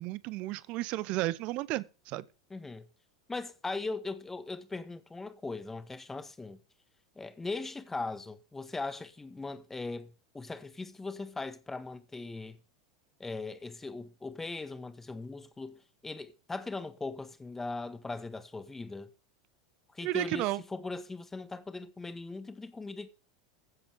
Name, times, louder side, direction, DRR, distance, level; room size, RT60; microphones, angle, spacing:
voice 1, 0.0-2.2 20.0-20.6, right 18 dB, 45° right, 0.9 m, -33 dB
voice 2, 2.5-2.9 3.3-6.6 7.1-12.6 13.2-19.1 19.9-23.1, left 3 dB, 10° left, 1.6 m, -39 dB
15.5 x 7.9 x 4.9 m
figure-of-eight pair, 85°, 3 cm